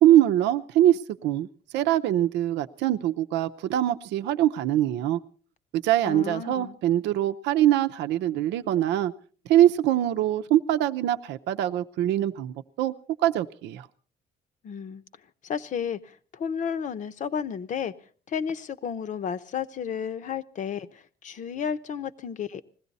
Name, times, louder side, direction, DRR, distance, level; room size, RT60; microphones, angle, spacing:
voice 1, 0.0-1.5 1.7-5.2 5.7-9.1 9.5-12.9 13.2-13.9, right 12 dB, 85° right, 9 dB, 0.7 m, -23 dB
voice 2, 6.1-6.7 14.6-15.0 15.4-17.9 18.3-22.6, left 7 dB, 45° left, 12 dB, 0.8 m, -32 dB
20.5 x 16.0 x 4.1 m, 0.42 s
cardioid pair, 130°, 18 cm